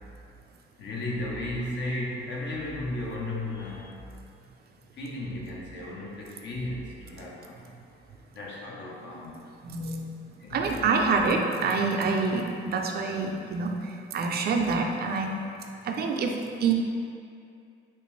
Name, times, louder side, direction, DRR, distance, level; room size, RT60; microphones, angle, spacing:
voice 1, 0.8-3.9 4.9-7.6 8.3-9.4 10.3-10.9, left 1 dB, 65° left, -3 dB, 0.8 m, -35 dB
voice 2, 9.6-10.1 10.5-13.8 14.1-15.4 15.8-16.7, right 4 dB, 50° right, 2 dB, 0.4 m, -26 dB
3.3 x 2.9 x 3.1 m, 2.4 s
cardioid pair, 90°, 20 cm